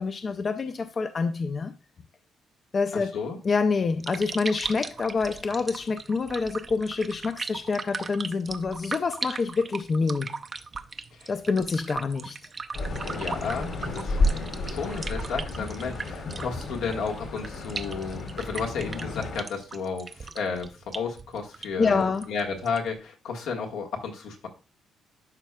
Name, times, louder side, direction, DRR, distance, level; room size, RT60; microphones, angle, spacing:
voice 1, 0.0-1.8 2.7-3.2 3.4-10.4 11.3-12.4 21.8-22.3, left 4 dB, 40° left, 0.5 m, -27 dB
voice 2, 2.9-3.4 11.1-11.3 13.1-14.2 14.6-24.5, left 5 dB, 85° left, 1.5 m, -33 dB
sound 1, 3.8-23.0, right 4 dB, 35° right, 0.5 m, -39 dB
sound 2, 12.7-19.4, left 2 dB, 65° left, 2.6 m, -31 dB
11.5 x 4.7 x 2.3 m
cardioid pair, 90°, 0 cm